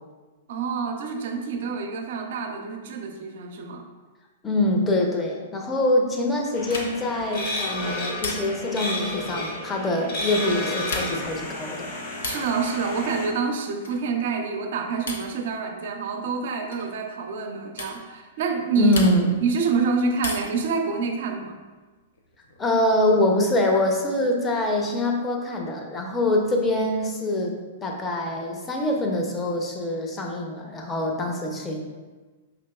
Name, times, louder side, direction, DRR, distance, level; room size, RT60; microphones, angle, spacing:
voice 1, 0.5-3.9 12.2-18.9 19.4-21.6, right 5 dB, 60° right, 5 dB, 0.5 m, -27 dB
voice 2, 4.4-11.9 18.8-19.4 22.6-27.5 27.8-31.9, left 1 dB, 20° left, 1 dB, 0.6 m, -24 dB
sound 1, 6.5-13.3, left 1 dB, 50° left, 1.1 m, -32 dB
sound 2, 6.6-7.2 8.2-8.8 10.7-11.4 12.2-12.6 13.8-14.2 15.1-15.4 16.7-16.9 17.8-18.0 18.9-19.5 20.2-20.7 22.1-22.8, left 2 dB, 75° left, 0.6 m, -34 dB
5.0 x 2.8 x 2.3 m, 1.3 s
hypercardioid pair, 110°, 0 cm